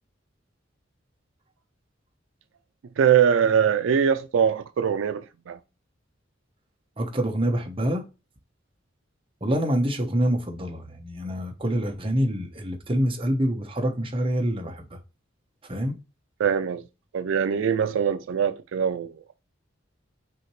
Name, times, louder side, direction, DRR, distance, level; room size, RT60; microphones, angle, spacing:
voice 1, 3.0-5.6 16.4-16.8 17.1-19.3, right 7 dB, 80° right, 0.4 m, -22 dB
voice 2, 7.0-8.0 9.4-15.0 15.7-16.0, equal, 30° right, 1.0 m, -26 dB
6.0 x 2.8 x 3.1 m
head